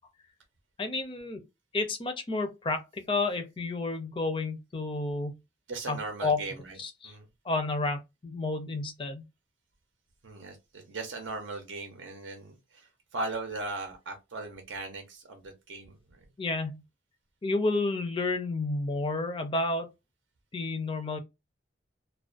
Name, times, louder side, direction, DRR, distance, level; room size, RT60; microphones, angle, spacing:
voice 1, 0.8-1.4 1.7-5.4 5.9-6.4 6.8-7.1 7.4-9.2 16.4-16.8 17.4-19.9 20.5-21.2, left 3 dB, 25° left, 0.4 m, -31 dB
voice 2, 5.7-6.8 7.0-7.3 10.2-16.0, right 3 dB, 75° right, 0.6 m, -38 dB
2.3 x 2.1 x 2.4 m
head